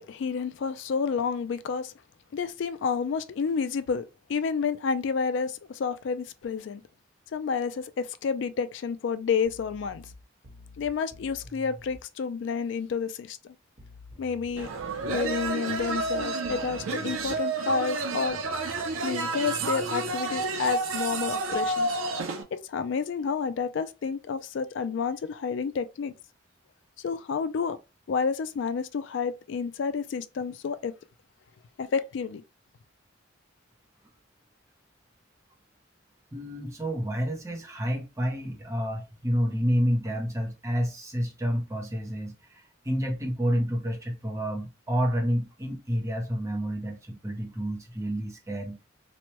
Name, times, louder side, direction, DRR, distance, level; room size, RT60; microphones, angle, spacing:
voice 1, 0.0-1.9 2.3-6.8 7.3-10.1 10.8-13.5 14.2-14.7 15.1-18.4 19.0-21.9 22.5-26.1 27.0-27.8 28.1-31.0 31.8-32.4, left 5 dB, 65° left, 0.3 m, -30 dB
sound 1, 9.4-12.0 13.8-17.4 18.4-20.1, equal, 40° right, 1.2 m, -48 dB
sound 2, 14.6-22.4, right 3 dB, 85° right, 0.5 m, -30 dB
voice 2, 36.3-48.8, equal, 15° right, 0.6 m, -29 dB
3.0 x 2.1 x 3.0 m
head